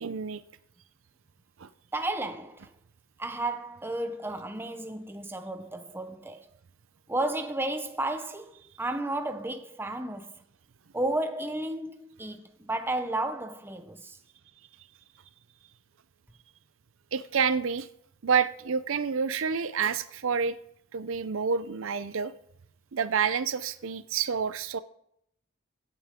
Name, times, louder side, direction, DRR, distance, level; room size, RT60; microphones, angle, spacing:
voice 1, 0.0-0.4 1.6-1.7 17.1-17.9 18.2-20.6 20.9-22.3 22.9-24.8, right 6 dB, 65° right, 0.5 m, -28 dB
voice 2, 1.9-2.7 3.2-6.5 7.1-10.3 10.9-14.2, right 2 dB, 10° right, 0.7 m, -33 dB
16.5 x 9.0 x 3.7 m
head